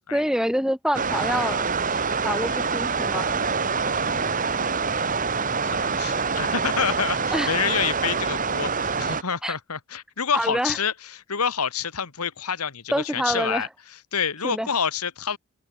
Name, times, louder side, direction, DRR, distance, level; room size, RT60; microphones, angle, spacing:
voice 1, 0.1-1.6 2.2-3.4 7.3-7.5 9.4-9.5 10.3-10.8 12.9-13.7 14.4-14.7, equal, 5° right, 4.5 m, -26 dB
sound 1, 0.9-9.2, right 5 dB, 35° right, 2.0 m, -25 dB
voice 2, 3.7-4.7 5.6-13.7 14.1-15.4, left 7 dB, 85° left, 1.7 m, -28 dB
open air
head